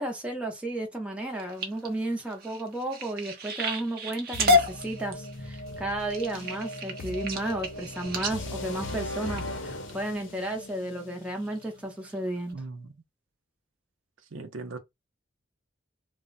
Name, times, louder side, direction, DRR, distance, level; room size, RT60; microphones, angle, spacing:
voice 1, 0.0-12.6, right 1 dB, 5° right, 0.7 m, -33 dB
sound 1, 1.2-9.9 10.5-10.8 11.3-11.6 12.1-12.2 12.5-12.6, left 2 dB, 50° right, 0.7 m, -31 dB
sound 2, 4.3-12.2, left 1 dB, 75° left, 0.7 m, -39 dB
voice 2, 12.5-12.9 14.3-14.8, right 3 dB, 85° right, 0.6 m, -38 dB
2.2 x 2.2 x 3.8 m
head